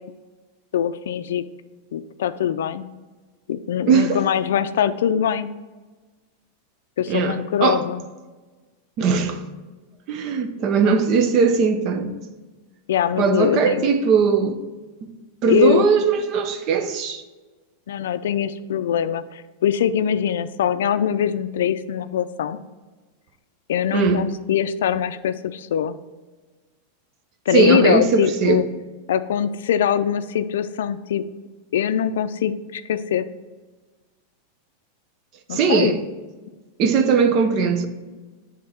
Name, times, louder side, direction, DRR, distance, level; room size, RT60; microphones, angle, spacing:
voice 1, 0.7-1.4 1.9-2.9 3.5-5.5 7.0-8.0 12.9-13.9 15.5-15.8 17.9-22.6 23.7-26.0 27.5-28.7 29.1-31.2 31.7-33.3 35.5-36.0, left 9 dB, 85° left, 0.3 m, -22 dB
voice 2, 3.9-4.2 7.1-7.8 9.0-9.4 10.1-12.1 13.2-14.6 15.0-15.1 15.4-17.2 23.9-24.2 27.5-28.6 35.5-36.0 36.8-37.9, right 6 dB, 40° right, 0.7 m, -19 dB
7.5 x 3.6 x 4.4 m
supercardioid pair, 145°, 0 cm